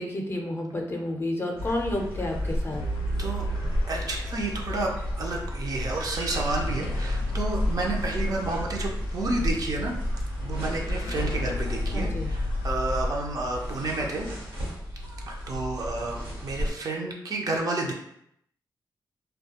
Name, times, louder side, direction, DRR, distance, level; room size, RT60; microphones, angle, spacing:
voice 1, 0.0-2.8 11.9-12.3, left 1 dB, 30° left, 1 dB, 0.5 m, -30 dB
sound 1, 1.6-16.7, equal, 85° right, 1.1 m, -32 dB
sound 2, 2.7-14.0, left 1 dB, 90° left, 0.4 m, -36 dB
voice 2, 3.9-9.9 10.4-14.3 15.3-17.9, right 2 dB, 50° right, 0 dB, 0.5 m, -30 dB
2.2 x 2.2 x 2.8 m, 0.75 s
cardioid pair, 95°, 8 cm